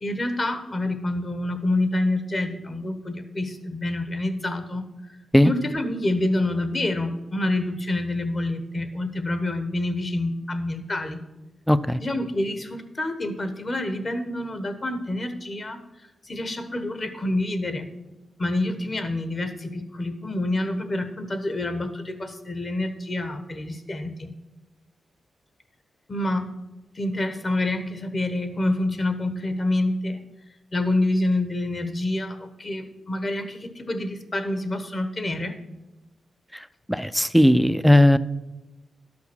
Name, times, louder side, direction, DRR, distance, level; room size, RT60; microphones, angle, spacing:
voice 1, 0.0-4.9 5.4-11.2 12.0-15.8 16.3-17.9 18.4-24.3 26.1-26.5 26.9-30.2 30.7-35.5, left 1 dB, 35° left, 9 dB, 1.3 m, -27 dB
voice 2, 11.7-12.0 36.9-38.2, left 1 dB, ahead, 14 dB, 0.5 m, -17 dB
12.0 x 5.9 x 6.2 m, 1.0 s
cardioid pair, 90°, 0 cm